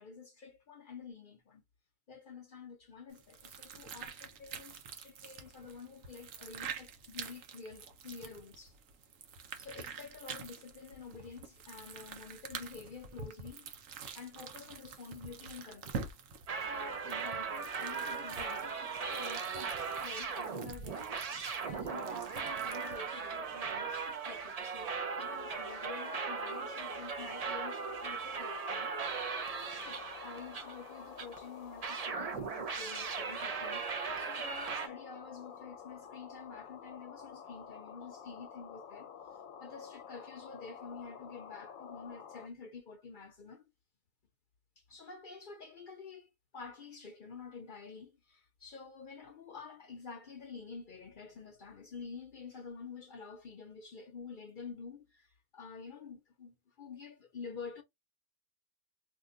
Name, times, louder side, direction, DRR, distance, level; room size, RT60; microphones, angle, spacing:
voice 1, 0.0-1.6 2.1-8.8 9.6-13.7 14.1-16.1 16.6-21.2 21.6-29.1 29.7-39.1 39.6-43.6 44.8-57.8, left 5 dB, 55° left, 0.6 m, -49 dB
sound 1, 3.1-23.1, right 6 dB, 80° right, 1.1 m, -47 dB
sound 2, 16.5-31.4 31.8-34.9, right 5 dB, 50° right, 0.4 m, -38 dB
sound 3, 25.0-42.5, left 7 dB, 90° left, 1.0 m, -50 dB
2.8 x 2.2 x 3.7 m
omnidirectional pair, 1.3 m